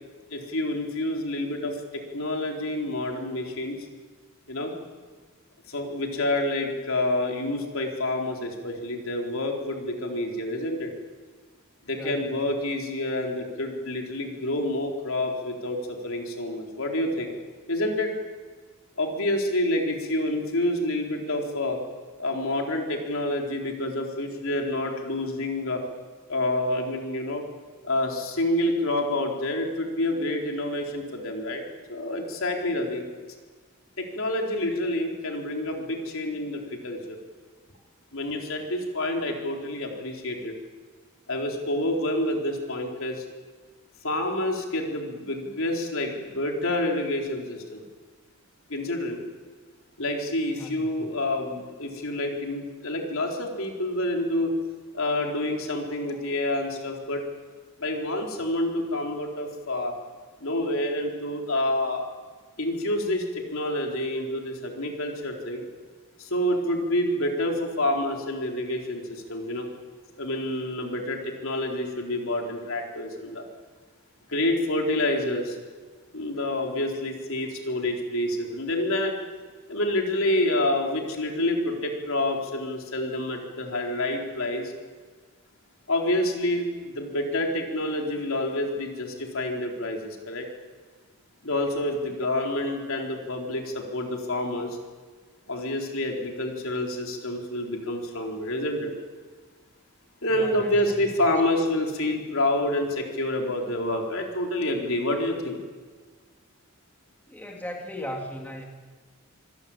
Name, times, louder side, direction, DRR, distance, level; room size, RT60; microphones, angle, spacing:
voice 1, 0.3-3.8 4.5-4.7 5.7-10.9 11.8-17.3 17.7-18.1 19.0-21.8 22.2-25.8 26.3-27.4 27.8-31.6 31.9-33.0 34.0-37.2 38.1-40.6 41.3-43.2 44.0-47.8 48.7-49.2 50.0-54.5 54.9-57.2 57.8-60.0 60.4-62.1 62.6-65.7 66.2-69.7 70.2-73.4 74.3-75.6 76.1-79.2 79.7-84.7 85.9-90.5 91.4-94.8 95.5-98.9 100.2-105.6, left 1 dB, 65° left, 1 dB, 4.2 m, -28 dB
voice 2, 11.9-12.3 50.5-51.0 92.7-92.8 100.2-101.1 107.3-108.6, equal, 10° left, 1 dB, 2.9 m, -38 dB
26.0 x 16.5 x 9.1 m, 1.5 s
head